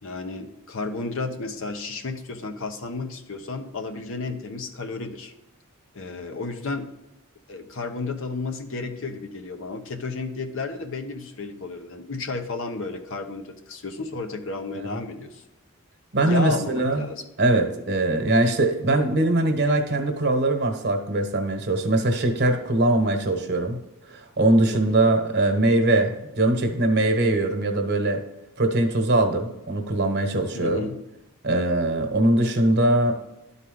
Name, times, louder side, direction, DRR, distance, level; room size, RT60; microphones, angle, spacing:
voice 1, 0.0-5.3 5.9-6.9 7.5-15.4 16.2-17.2 24.9-25.2 30.5-31.0, left 3 dB, 65° left, 5 dB, 0.9 m, -32 dB
voice 2, 16.1-17.1 17.4-23.8 24.1-28.2 28.6-30.8 31.4-33.1, right 2 dB, 55° right, 4 dB, 1.2 m, -21 dB
12.0 x 4.1 x 3.8 m, 0.95 s
head